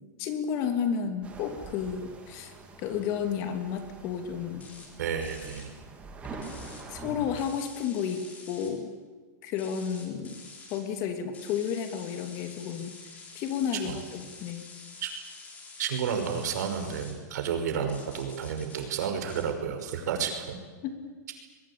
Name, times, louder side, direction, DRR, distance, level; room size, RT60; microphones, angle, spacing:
voice 1, 0.2-4.7 6.3-6.6 6.9-8.9 9.4-10.4 10.7-13.0 13.3-14.7 20.8-21.1, left 7 dB, 35° left, 6 dB, 2.8 m, -32 dB
sound 1, 1.2-7.5, right 3 dB, 15° right, 3.1 m, -45 dB
sound 2, 4.6-4.9 5.2-5.7 6.4-6.8 7.4-8.7 9.5-10.8 11.3-17.1 17.9-18.8 19.3-19.5, left 4 dB, 15° left, 4.3 m, -48 dB
voice 2, 5.0-5.7 13.8-14.0 15.0-15.1 15.8-20.6, right 7 dB, 70° right, 5 dB, 5.6 m, -31 dB
24.0 x 22.0 x 8.8 m, 1.4 s
supercardioid pair, 165°, 10 cm